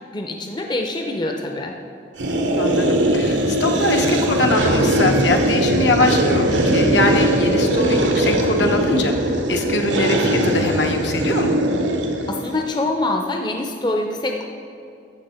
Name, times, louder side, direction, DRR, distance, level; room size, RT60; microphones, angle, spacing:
voice 1, 0.1-1.8 12.3-14.5, left 2 dB, 25° left, 3 dB, 0.6 m, -25 dB
sound 1, 2.2-12.6, right 1 dB, 85° right, 1.0 m, -20 dB
voice 2, 2.5-11.6, left 2 dB, 75° left, 3 dB, 1.0 m, -22 dB
14.5 x 6.3 x 4.3 m, 2.4 s
head